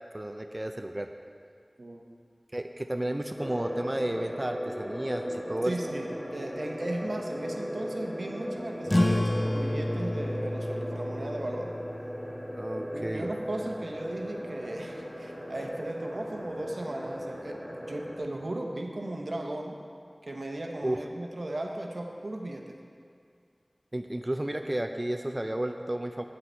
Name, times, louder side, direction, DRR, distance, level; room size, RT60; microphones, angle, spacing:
voice 1, 0.1-1.1 2.5-5.9 12.5-13.3 20.8-21.0 23.9-26.2, right 1 dB, 30° right, 5 dB, 0.4 m, -32 dB
sound 1, 3.4-18.2, equal, 5° left, 1.7 m, -37 dB
voice 2, 5.6-11.7 12.9-19.8 20.2-22.8, right 1 dB, 85° right, 2 dB, 0.9 m, -36 dB
sound 2, 8.9-13.9, left 1 dB, 35° left, 0.4 m, -31 dB
9.7 x 7.7 x 4.4 m, 2.2 s
wide cardioid pair, 50°, 0 cm